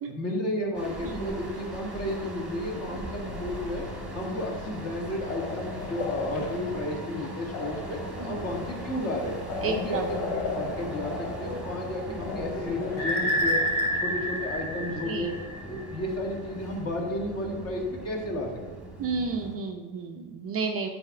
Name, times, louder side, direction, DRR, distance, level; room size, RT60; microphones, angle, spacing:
voice 1, 0.1-3.8 4.1-8.0 8.3-9.3 9.6-10.0 10.5-13.6 14.0-15.3 15.7-18.8, left 1 dB, 35° left, -1 dB, 1.7 m, -32 dB
sound 1, 0.7-19.6, right 1 dB, ahead, 1.4 m, -39 dB
sound 2, 3.2-13.9, left 4 dB, 75° left, 1.1 m, -38 dB
voice 2, 9.6-10.1 12.1-12.3 15.0-15.3 19.0-20.9, right 4 dB, 35° right, 3 dB, 0.5 m, -32 dB
sound 3, 13.0-15.8, equal, 60° left, 2.0 m, -28 dB
8.7 x 4.1 x 4.7 m, 1.2 s
cardioid pair, 135°, 43 cm